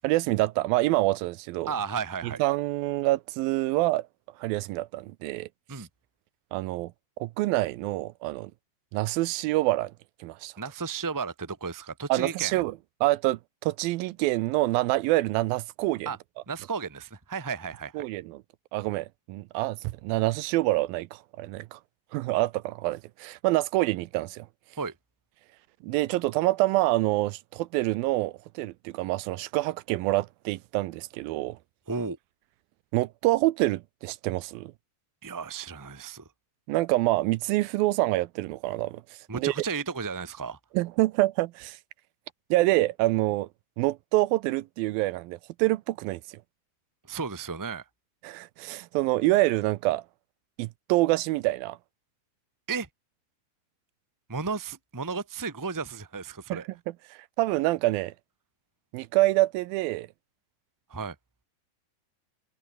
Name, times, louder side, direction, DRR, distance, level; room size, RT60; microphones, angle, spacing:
voice 1, 0.0-1.7 2.4-4.1 4.4-5.5 5.8-5.9 6.5-6.9 7.2-8.5 8.9-9.9 10.2-10.5 12.1-12.7 13.0-16.1 18.0-18.4 18.7-21.8 22.1-24.5 25.8-31.6 32.9-34.7 36.7-39.0 39.3-39.6 40.7-41.8 42.5-43.5 43.8-46.4 48.2-50.0 50.6-51.8 56.5-56.6 57.1-58.1 58.9-60.1, right 18 dB, 85° right, 2.4 m, -26 dB
voice 2, 1.7-2.4 5.7-5.9 10.6-12.6 16.0-16.2 16.5-18.1 24.8-24.9 31.9-32.2 35.2-36.3 39.3-40.6 47.1-47.8 52.7-52.9 54.3-56.7 60.9-61.1, right 5 dB, 10° right, 0.9 m, -33 dB
omnidirectional pair, 4.2 m